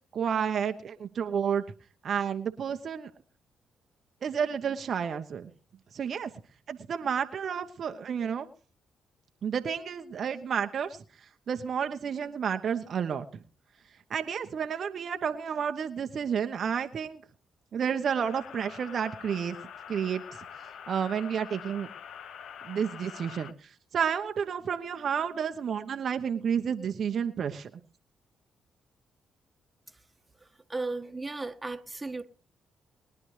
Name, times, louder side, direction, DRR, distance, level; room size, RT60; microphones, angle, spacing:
voice 1, 0.1-1.6 2.0-3.1 4.2-5.5 5.9-6.3 6.7-8.5 9.4-11.0 11.5-13.3 14.1-17.2 17.7-19.6 19.9-20.2 20.9-21.9 22.7-27.7, right 7 dB, 60° right, 1.0 m, -31 dB
sound 1, 18.2-23.5, left 8 dB, 70° left, 0.9 m, -45 dB
voice 2, 30.7-32.2, right 3 dB, 20° right, 1.6 m, -35 dB
21.5 x 10.5 x 3.2 m
hypercardioid pair, 45°, 0 cm